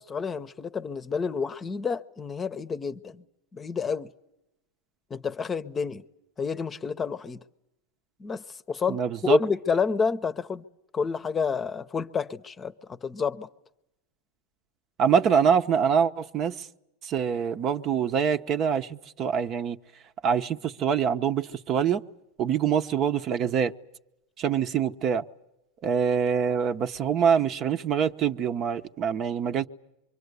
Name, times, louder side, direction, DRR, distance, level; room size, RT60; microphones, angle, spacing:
voice 1, 0.0-3.2 3.5-4.1 5.1-6.0 6.4-7.4 8.2-10.6 10.9-13.5, left 5 dB, 20° left, 0.9 m, -29 dB
voice 2, 8.9-9.4 15.0-16.7 17.0-19.8 20.2-22.0 22.4-23.7 24.4-25.2 25.8-29.7, right 7 dB, 40° right, 0.9 m, -25 dB
25.5 x 24.0 x 8.2 m
supercardioid pair, 120°, 0 cm